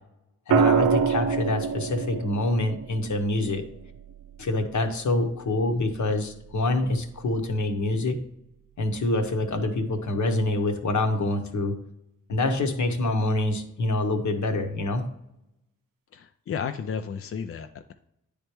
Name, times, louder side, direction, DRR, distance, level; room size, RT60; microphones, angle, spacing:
voice 1, 0.5-3.7 4.4-8.2 8.8-11.8 12.3-15.0, left 2 dB, 60° left, 5 dB, 1.0 m, -26 dB
sound 1, 0.5-4.6 6.3-6.7, right 6 dB, 80° right, 0.5 m, -26 dB
voice 2, 16.1-17.9, left 6 dB, 45° left, 7 dB, 0.4 m, -33 dB
9.3 x 3.4 x 3.0 m, 0.84 s
supercardioid pair, 45°, 33 cm